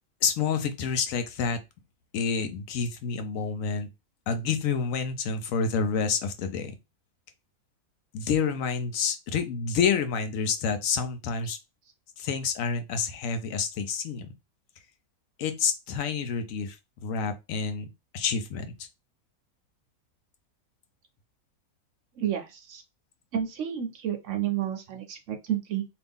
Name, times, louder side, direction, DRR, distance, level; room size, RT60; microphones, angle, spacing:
voice 1, 0.2-1.6 2.1-3.9 4.3-6.8 8.1-11.6 12.2-14.3 15.4-16.8 17.0-18.9, left 6 dB, 70° left, 0.9 m, -28 dB
voice 2, 22.2-22.8 23.3-25.8, right 10 dB, 65° right, 0.9 m, -30 dB
2.8 x 2.6 x 3.5 m
omnidirectional pair, 1.5 m